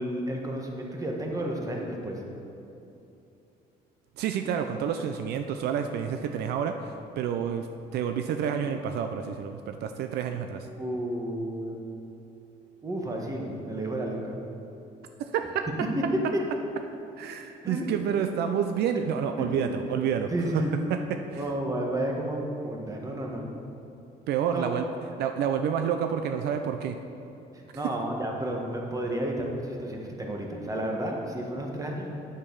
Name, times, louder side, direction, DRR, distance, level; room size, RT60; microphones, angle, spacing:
voice 1, 0.0-2.2 10.7-11.8 12.8-14.3 15.9-16.0 16.3-16.4 17.6-17.9 19.4-19.7 20.3-20.7 21.3-23.5 24.5-24.7 27.5-32.1, right 1 dB, 20° right, 0 dB, 1.4 m, -31 dB
voice 2, 4.2-7.7 7.9-10.7 15.2-15.7 17.2-20.3 20.9-21.0 21.3-21.4 24.3-24.9 25.2-27.0, right 8 dB, 75° right, 6 dB, 0.5 m, -29 dB
8.8 x 6.7 x 5.4 m, 2.8 s
cardioid pair, 110°, 17 cm